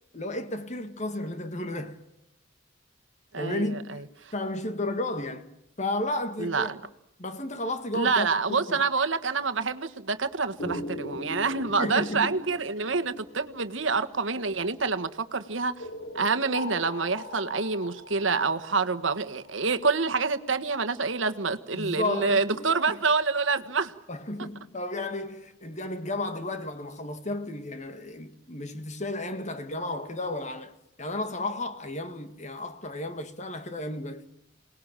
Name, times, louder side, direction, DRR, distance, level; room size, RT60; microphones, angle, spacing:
voice 1, 0.1-2.0 3.4-4.1 4.3-5.5 5.8-6.8 7.2-8.8 11.8-12.5 21.7-23.0 24.1-30.7 31.0-34.3, left 1 dB, 40° left, 2.0 m, -33 dB
voice 2, 3.3-4.0 6.4-6.8 7.9-15.8 16.1-23.9, right 4 dB, 80° right, 1.5 m, -27 dB
sound 1, 10.6-14.8 15.8-19.6, left 1 dB, 80° left, 4.3 m, -40 dB
27.0 x 19.5 x 9.0 m
head